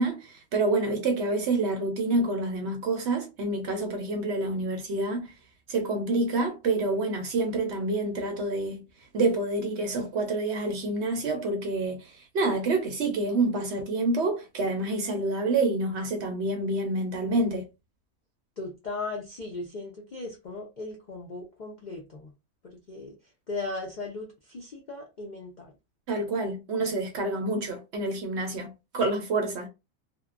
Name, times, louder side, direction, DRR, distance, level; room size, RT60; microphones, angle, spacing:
voice 1, 0.0-5.3 5.7-8.8 9.1-17.6 26.1-29.7, right 2 dB, 65° right, 0.7 m, -28 dB
voice 2, 18.6-22.3 22.6-23.2 23.5-25.7 26.8-26.9, left 3 dB, 85° left, 0.4 m, -37 dB
2.7 x 2.1 x 2.3 m
omnidirectional pair, 1.5 m